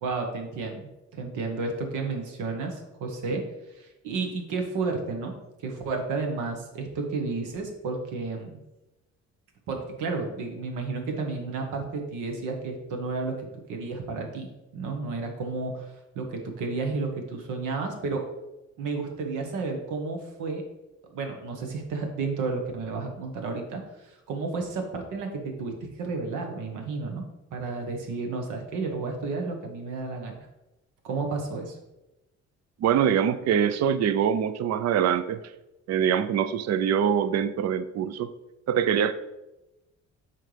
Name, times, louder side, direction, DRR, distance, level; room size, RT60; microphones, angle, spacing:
voice 1, 0.0-3.4 3.7-5.4 5.6-8.6 9.7-18.2 18.8-20.6 21.1-27.2 27.5-30.3 31.0-31.8, right 4 dB, 90° right, 3 dB, 1.2 m, -32 dB
voice 2, 32.8-35.4 35.9-38.3 38.7-39.1, right 8 dB, 60° right, 13 dB, 0.5 m, -24 dB
7.6 x 4.4 x 3.3 m, 0.97 s
cardioid pair, 90°, 30 cm